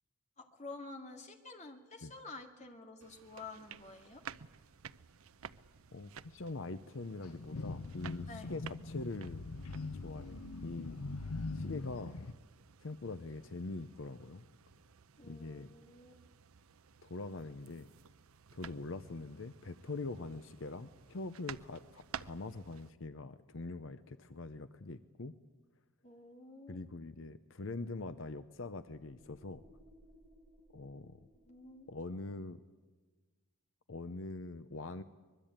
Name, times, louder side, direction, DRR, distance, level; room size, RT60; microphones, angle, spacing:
voice 1, 0.4-4.2 8.3-8.5 15.2-16.2 26.0-26.8 31.4-31.9, left 3 dB, 30° left, 4 dB, 2.3 m, -50 dB
sound 1, 3.0-22.9, right 7 dB, 75° right, 0.7 m, -54 dB
voice 2, 5.9-9.4 9.9-11.0 11.5-12.2 12.8-14.4 15.2-15.7 17.0-17.9 18.5-25.4 26.7-29.6 30.7-31.2 31.9-32.6 33.9-35.0, left 3 dB, 60° left, 11 dB, 0.7 m, -43 dB
sound 2, 7.2-12.3, left 3 dB, 90° left, 0.8 m, -42 dB
sound 3, 28.8-32.6, equal, 10° left, 5.2 m, -64 dB
24.0 x 21.5 x 8.9 m, 1.3 s
head